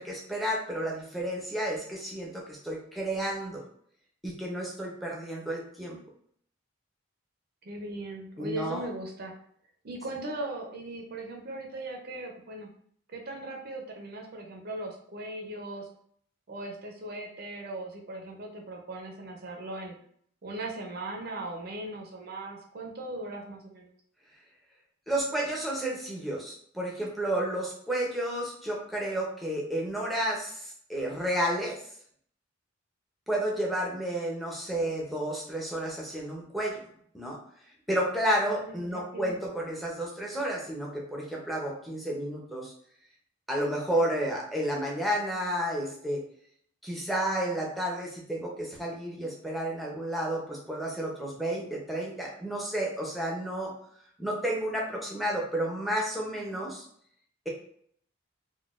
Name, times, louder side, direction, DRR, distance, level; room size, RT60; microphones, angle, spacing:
voice 1, 0.0-3.6 4.2-6.0 8.4-8.8 25.1-31.8 33.3-36.8 37.1-37.4 37.9-42.7 43.5-46.2 46.8-53.7 54.2-56.8, right 1 dB, ahead, -3 dB, 0.6 m, -31 dB
voice 2, 7.6-9.3 9.8-12.7 13.1-15.9 16.5-20.0 20.4-23.9 38.5-39.4, right 2 dB, 50° right, 2 dB, 0.5 m, -38 dB
3.8 x 2.2 x 2.4 m, 0.63 s
head